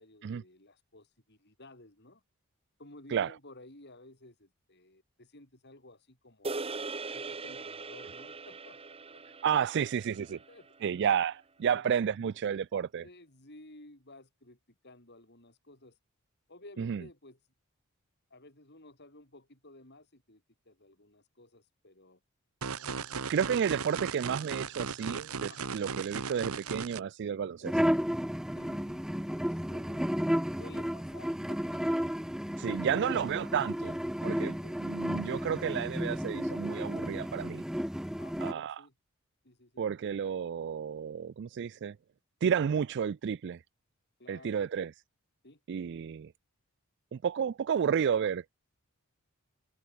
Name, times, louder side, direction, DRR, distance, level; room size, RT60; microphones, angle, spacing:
voice 1, 0.0-2.2 2.8-6.7 7.1-9.2 10.3-10.7 11.6-11.8 13.0-16.0 16.5-17.4 18.3-22.2 22.9-23.5 25.5-25.8 27.4-27.7 28.5-30.0 30.6-31.8 34.4-34.8 38.2-38.9 39.4-39.8 44.2-44.6 45.4-45.6, left 2 dB, 50° left, 5.3 m, -54 dB
sound 1, 6.4-10.9, right 3 dB, 25° right, 1.1 m, -41 dB
voice 2, 9.4-10.4 10.8-13.1 16.8-17.0 23.3-27.8 32.6-34.0 34.2-34.5 34.8-37.6 38.4-38.8 39.8-42.0 42.4-43.6 44.3-44.9 45.7-46.3 47.1-48.4, right 7 dB, 50° right, 0.3 m, -31 dB
sound 2, 22.6-27.0, right 5 dB, 75° right, 1.1 m, -37 dB
sound 3, 27.6-38.5, equal, ahead, 0.8 m, -33 dB
head